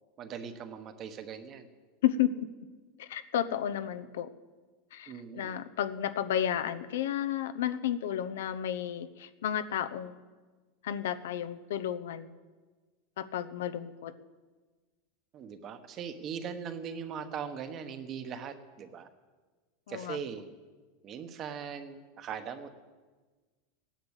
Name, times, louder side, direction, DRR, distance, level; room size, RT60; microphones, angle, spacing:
voice 1, 0.2-1.7 5.1-5.6 15.3-19.1 19.9-20.4 21.0-22.8, right 7 dB, 30° right, 9 dB, 1.1 m, -40 dB
voice 2, 2.0-2.5 3.0-4.3 4.9-10.1 10.8-12.3 13.2-14.1 19.9-20.2, left 10 dB, 90° left, 12 dB, 0.8 m, -32 dB
16.0 x 10.5 x 8.1 m, 1.4 s
supercardioid pair, 165°, 0 cm